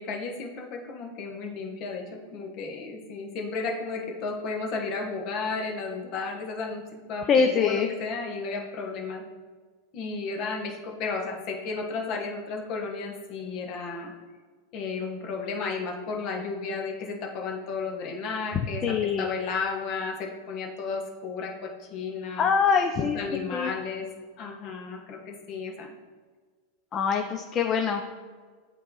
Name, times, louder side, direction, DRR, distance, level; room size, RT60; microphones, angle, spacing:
voice 1, 0.0-2.0 2.3-9.2 9.9-14.1 14.7-22.5 22.9-24.1 24.4-25.9, left 4 dB, 50° left, 2 dB, 1.2 m, -33 dB
voice 2, 7.3-7.9 18.5-19.2 22.4-23.2 23.5-23.7 26.9-28.0, left 6 dB, 30° left, 4 dB, 0.4 m, -24 dB
8.5 x 3.1 x 3.8 m, 1.5 s
hypercardioid pair, 120°, 0 cm